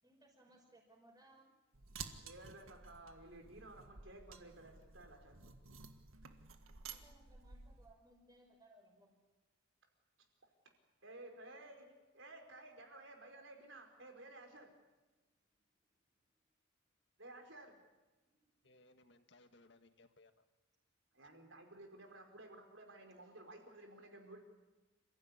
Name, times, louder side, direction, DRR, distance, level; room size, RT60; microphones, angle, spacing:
voice 1, 0.0-1.5 6.9-9.1 15.2-15.3 15.7-15.9 18.2-18.5, right 1 dB, 20° right, 1 dB, 5.9 m, -65 dB
sound 1, 1.7-7.9, right 5 dB, 90° right, 1.7 m, -53 dB
voice 2, 2.2-5.4 11.0-11.9 12.1-14.7 17.2-17.8 21.1-24.4, right 2 dB, 65° right, 4 dB, 4.8 m, -55 dB
voice 3, 18.6-20.4 24.3-24.4, left 2 dB, 55° left, 8 dB, 1.8 m, -65 dB
28.5 x 15.5 x 9.8 m, 1.2 s
head